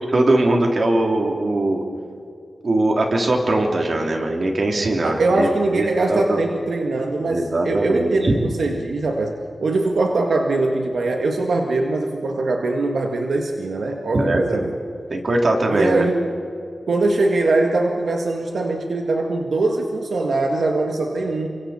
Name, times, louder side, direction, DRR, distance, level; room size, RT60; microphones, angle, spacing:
voice 1, 0.1-1.8 2.6-6.4 7.2-8.4 14.1-14.6 15.1-16.0, right 2 dB, 50° right, 1 dB, 3.2 m, -20 dB
voice 2, 5.0-14.7 15.7-16.3 16.9-21.5, right 2 dB, 85° right, 2 dB, 1.8 m, -22 dB
30.0 x 25.0 x 4.4 m, 2.5 s
wide cardioid pair, 120°, 0 cm